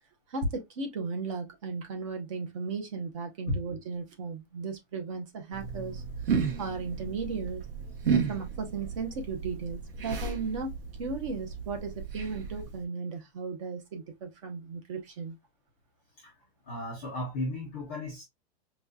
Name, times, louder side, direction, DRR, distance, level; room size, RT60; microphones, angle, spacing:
voice 1, 0.3-7.6 8.1-15.4, right 4 dB, 30° right, 0.7 m, -36 dB
sound 1, 5.5-12.8, right 6 dB, 55° right, 1.1 m, -34 dB
voice 2, 16.7-18.2, left 1 dB, 15° left, 0.4 m, -34 dB
5.0 x 2.2 x 2.2 m
supercardioid pair, 175°, 33 cm